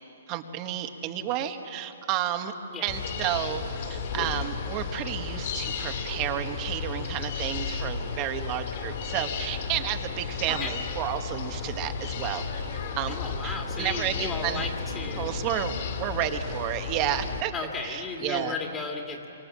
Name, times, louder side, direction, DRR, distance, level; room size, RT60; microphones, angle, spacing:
voice 1, 0.3-2.5 2.8-12.7 13.0-13.1 13.4-14.7 15.2-17.5 17.8-18.5, right 11 dB, 30° right, 7 dB, 1.5 m, -31 dB
sound 1, 2.9-17.4, left 5 dB, 50° left, 3.2 m, -33 dB
voice 2, 13.1-15.5 17.5-19.2, left 4 dB, 15° left, 1 dB, 2.2 m, -35 dB
25.5 x 24.5 x 7.5 m, 3.0 s
hypercardioid pair, 150°, 0 cm